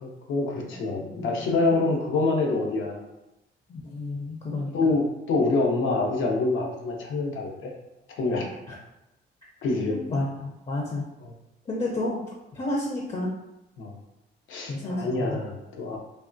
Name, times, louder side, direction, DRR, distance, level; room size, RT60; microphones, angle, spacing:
voice 1, 0.0-3.0 4.7-7.7 8.2-8.5 9.6-10.0 11.2-11.3 13.8-13.9 14.5-16.0, left 3 dB, 80° left, 0 dB, 0.7 m, -26 dB
voice 2, 1.1-1.8 3.7-4.9 8.7-8.8 9.9-11.1 11.7-13.3 14.7-15.4, left 2 dB, 35° left, -2 dB, 0.5 m, -31 dB
3.4 x 2.3 x 2.5 m, 0.94 s
cardioid pair, 90°, 20 cm